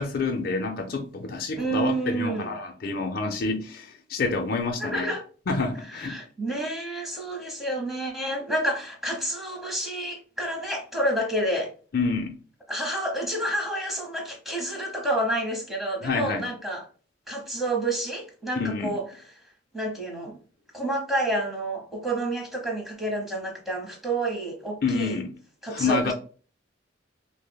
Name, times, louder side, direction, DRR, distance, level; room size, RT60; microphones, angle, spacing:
voice 1, 0.0-5.1 5.5-6.2 11.9-12.4 16.0-16.5 18.6-18.9 24.8-25.3 25.7-26.1, left 4 dB, 50° left, 0.5 m, -28 dB
voice 2, 1.6-2.6 4.8-5.2 5.8-11.7 12.7-16.9 17.3-19.3 19.7-20.4 20.7-25.2 25.6-26.1, right 1 dB, ahead, 0.9 m, -29 dB
5.1 x 2.1 x 2.2 m
head